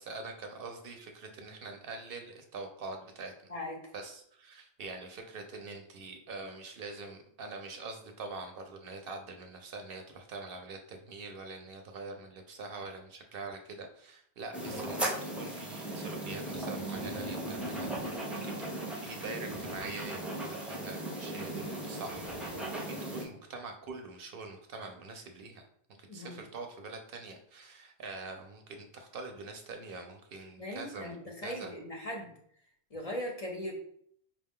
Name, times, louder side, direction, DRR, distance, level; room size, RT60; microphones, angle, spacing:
voice 1, 0.0-3.3 3.9-25.6 26.0-31.1 31.4-31.7, right 3 dB, 65° right, 5 dB, 0.7 m, -44 dB
voice 2, 3.5-3.8 26.1-26.4 30.6-32.3 32.9-33.7, left 1 dB, 40° left, 0 dB, 0.6 m, -39 dB
sound 1, 14.5-23.2, right 1 dB, ahead, 0.5 m, -37 dB
4.9 x 2.3 x 3.5 m, 0.66 s
omnidirectional pair, 1.1 m